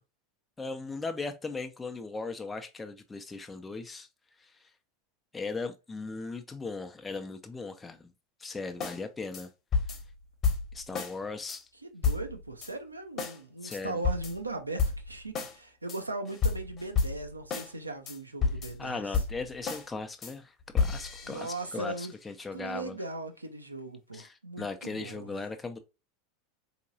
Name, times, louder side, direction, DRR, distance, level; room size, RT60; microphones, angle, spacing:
voice 1, 0.6-4.1 4.4-4.5 5.3-8.1 8.4-9.5 10.7-11.7 13.6-14.0 18.8-23.0 24.1-25.8, left 3 dB, 15° left, 0.5 m, -38 dB
sound 1, 8.8-9.0 9.3-9.5 9.7-11.2 11.5-11.6 12.0-12.7 13.2-13.4 13.7-15.6 15.9-17.7 18.1-19.9 20.2-20.3 20.6-21.9, left 5 dB, 35° left, 1.0 m, -31 dB
voice 2, 11.9-19.0 21.2-22.1 22.5-25.5, right 2 dB, 85° right, 0.6 m, -39 dB
4.5 x 2.8 x 2.5 m
figure-of-eight pair, 85°, 0 cm